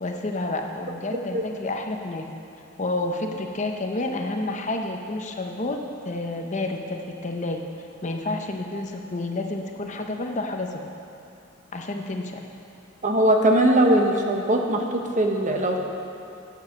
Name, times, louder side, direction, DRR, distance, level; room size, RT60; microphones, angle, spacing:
voice 1, 0.0-2.3 2.8-5.8 6.0-7.6 8.0-10.8 11.7-12.4, left 2 dB, 35° left, 3 dB, 0.7 m, -29 dB
voice 2, 13.0-15.8, right 1 dB, 35° right, 2 dB, 0.9 m, -20 dB
9.0 x 7.1 x 7.2 m, 2.8 s
head